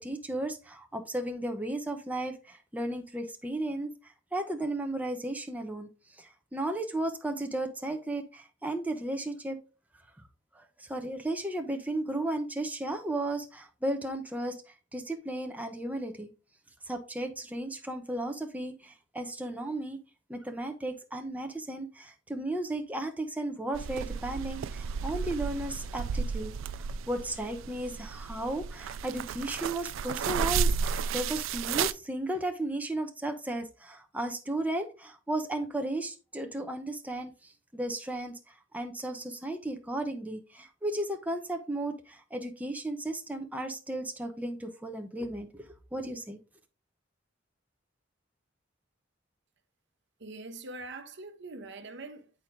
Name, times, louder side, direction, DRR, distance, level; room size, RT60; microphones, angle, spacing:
voice 1, 0.0-3.9 4.3-5.9 6.2-9.6 10.5-14.6 14.9-16.3 16.9-20.0 20.3-38.4 38.7-45.6 45.9-46.4, right 1 dB, 10° right, 0.7 m, -34 dB
sound 1, 23.7-31.9, right 6 dB, 80° right, 0.3 m, -33 dB
voice 2, 50.2-52.3, right 2 dB, 60° right, 0.9 m, -43 dB
8.2 x 4.5 x 3.7 m
head